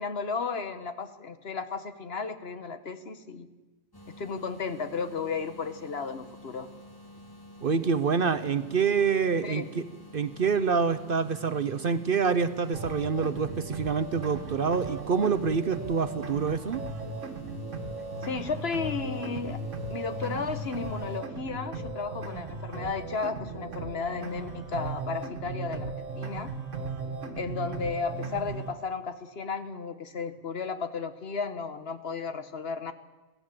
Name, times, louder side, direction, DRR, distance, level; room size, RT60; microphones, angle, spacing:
voice 1, 0.0-3.5 4.2-6.7 9.4-9.7 18.2-19.6 19.9-26.5 27.4-32.9, left 5 dB, 55° left, 10 dB, 1.3 m, -34 dB
sound 1, 3.9-21.2, left 1 dB, 20° left, 1.5 m, -50 dB
voice 2, 7.6-9.8 10.1-16.8, right 5 dB, 50° right, 13 dB, 0.9 m, -26 dB
sound 2, 12.7-28.7, right 3 dB, 75° right, 1.9 m, -37 dB
22.5 x 16.0 x 7.6 m, 1.2 s
omnidirectional pair, 1.3 m